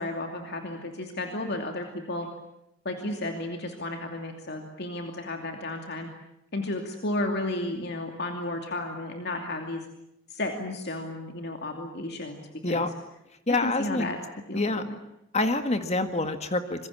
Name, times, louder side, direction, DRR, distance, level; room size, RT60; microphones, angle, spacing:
voice 1, 0.0-2.3 2.8-6.1 6.5-9.8 10.3-12.9 13.6-14.2 14.5-14.9, left 1 dB, 55° left, 4 dB, 2.7 m, -33 dB
voice 2, 13.5-14.1 14.5-14.8 15.3-16.9, left 2 dB, 30° left, 8 dB, 1.8 m, -26 dB
27.0 x 22.5 x 8.7 m, 0.85 s
head